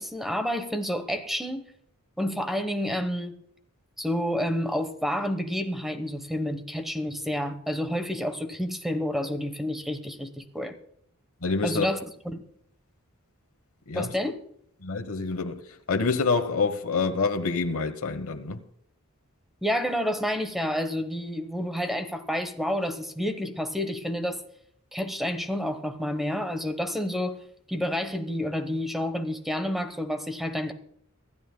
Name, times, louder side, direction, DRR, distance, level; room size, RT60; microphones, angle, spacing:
voice 1, 0.0-1.6 2.2-3.4 4.0-10.7 11.6-12.0 12.2-12.4 13.9-14.4 19.6-24.4 24.9-27.4 27.7-30.7, equal, ahead, 1.0 m, -29 dB
voice 2, 11.4-11.9 13.9-14.1 14.8-15.6 15.9-18.6, left 4 dB, 70° left, 1.0 m, -27 dB
25.0 x 11.0 x 2.2 m
head